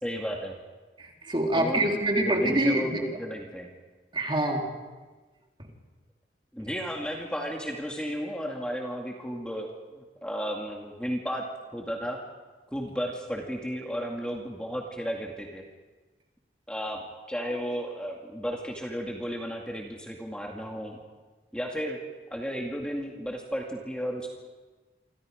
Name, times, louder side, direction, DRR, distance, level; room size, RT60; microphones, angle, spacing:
voice 1, 0.0-0.6 1.5-1.9 2.2-3.7 6.5-11.4 11.7-12.2 12.7-15.6 16.7-17.0 17.3-21.0 21.5-22.0 22.3-24.3, equal, 5° left, 0 dB, 2.2 m, -33 dB
voice 2, 1.0-3.0 4.1-4.7, right 1 dB, 30° right, 0 dB, 3.8 m, -25 dB
28.5 x 26.0 x 5.1 m, 1.3 s
head